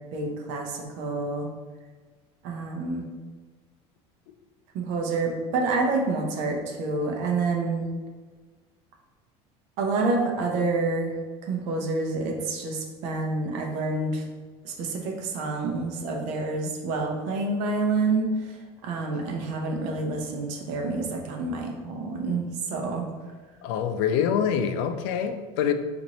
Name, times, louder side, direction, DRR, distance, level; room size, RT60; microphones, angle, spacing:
voice 1, 0.1-1.5 2.4-3.1 4.7-7.9 9.8-11.1 11.4-14.2 14.6-18.6 18.8-23.1, right 3 dB, 60° right, 2 dB, 0.7 m, -28 dB
voice 2, 23.6-25.7, left 8 dB, 75° left, 8 dB, 0.4 m, -25 dB
4.0 x 2.5 x 3.0 m, 1.3 s
cardioid pair, 170°, 13 cm